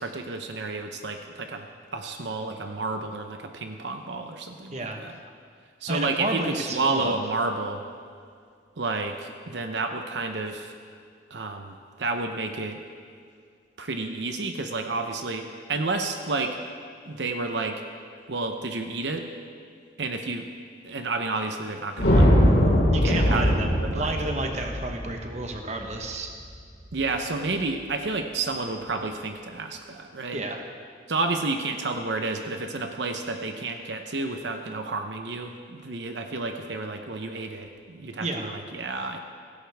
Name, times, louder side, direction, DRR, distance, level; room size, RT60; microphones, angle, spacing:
voice 1, 0.0-5.2 5.8-7.8 8.8-10.7 11.3-12.8 13.8-16.6 17.0-17.8 18.3-19.3 20.0-20.5 20.8-22.3 23.0-23.5 23.8-24.1 26.9-30.4 31.1-39.2, right 3 dB, 75° right, 5 dB, 0.9 m, -30 dB
voice 2, 4.7-5.2 5.9-7.2 22.9-26.3 30.3-30.6 38.2-38.5, right 2 dB, 35° right, 3 dB, 1.2 m, -31 dB
sound 1, 22.0-26.4, equal, 85° left, 4.3 m, -21 dB
17.0 x 16.0 x 3.5 m, 2.2 s
head